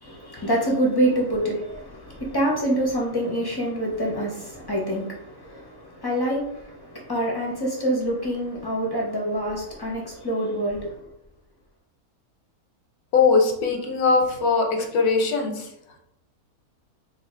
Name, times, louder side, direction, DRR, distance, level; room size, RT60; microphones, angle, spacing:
voice 1, 0.0-10.9, right 1 dB, 35° left, -2 dB, 0.4 m, -26 dB
voice 2, 13.1-15.7, left 4 dB, 90° left, 3 dB, 1.2 m, -21 dB
2.7 x 2.6 x 4.2 m, 0.81 s
omnidirectional pair, 1.6 m